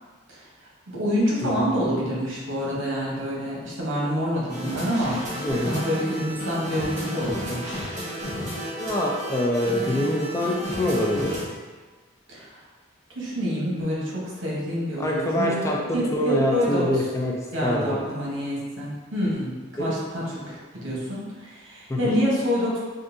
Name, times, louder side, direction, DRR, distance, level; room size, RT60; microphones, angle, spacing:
voice 1, 0.9-5.2 5.7-7.9 12.3-12.5 13.1-15.6 15.9-16.8 17.5-22.8, equal, 90° right, -5 dB, 0.9 m, -27 dB
sound 1, 4.5-11.4, equal, 40° right, 1.4 m, -32 dB
voice 2, 5.4-5.8 8.8-11.4 15.0-17.3 17.6-18.0 19.8-19.9 21.9-22.2, left 1 dB, 15° left, -2 dB, 0.3 m, -25 dB
3.7 x 2.5 x 2.6 m, 1.4 s
head